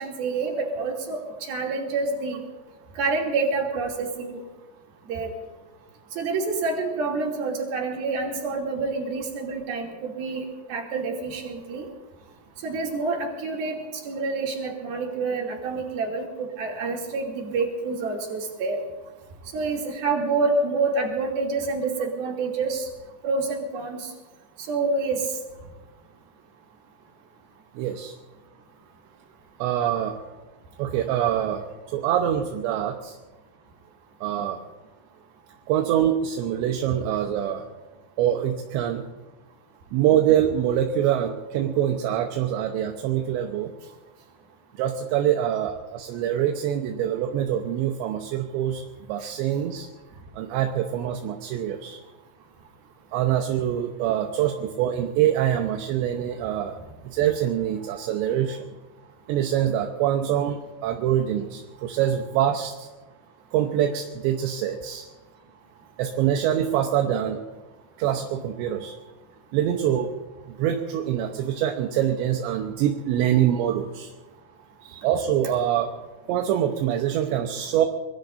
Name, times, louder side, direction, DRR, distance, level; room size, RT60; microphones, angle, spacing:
voice 1, 0.0-2.4 3.0-4.4 5.1-5.3 6.1-11.9 12.6-18.8 19.5-22.9 23.2-24.1 24.6-25.4 74.9-75.1, right 3 dB, 50° right, -1 dB, 4.3 m, -27 dB
voice 2, 27.8-28.1 29.6-30.2 30.8-31.6 31.9-33.2 34.2-34.6 35.7-37.7 38.2-39.0 39.9-43.7 44.7-48.8 49.1-49.9 50.4-52.0 53.1-56.8 57.0-58.7 59.3-62.9 63.5-65.1 66.0-67.4 68.0-68.9 69.5-70.1 70.6-74.1 75.0-75.9 76.3-77.9, right 10 dB, 75° right, 3 dB, 2.9 m, -24 dB
24.5 x 21.5 x 2.7 m, 1.2 s
omnidirectional pair, 5.8 m